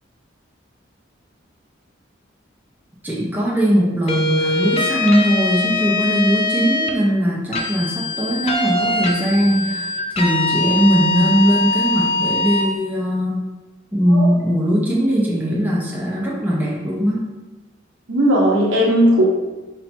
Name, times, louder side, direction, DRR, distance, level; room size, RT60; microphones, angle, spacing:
voice 1, 3.0-9.9 10.2-13.5 13.9-17.2, equal, 10° right, -5 dB, 0.7 m, -19 dB
sound 1, 4.1-7.0 7.5-12.7, left 2 dB, 30° left, 0.5 m, -22 dB
voice 2, 18.1-19.3, equal, 80° right, -3 dB, 1.1 m, -16 dB
4.3 x 2.7 x 4.4 m, 1.1 s
head